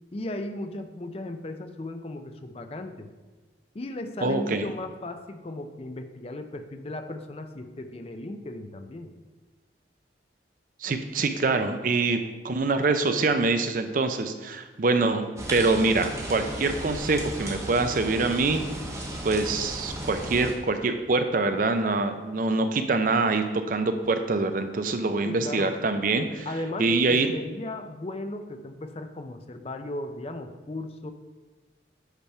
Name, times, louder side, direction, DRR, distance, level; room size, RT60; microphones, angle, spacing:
voice 1, 0.1-3.1 3.7-9.1 25.2-25.8 26.5-31.1, left 1 dB, 30° left, 7 dB, 0.4 m, -36 dB
voice 2, 4.2-4.6 10.8-18.6 19.2-26.5 26.8-27.3, right 3 dB, 45° right, 8 dB, 0.5 m, -25 dB
sound 1, 15.4-20.5, right 1 dB, 15° right, 0.8 m, -35 dB
8.1 x 3.4 x 5.5 m, 1.3 s
head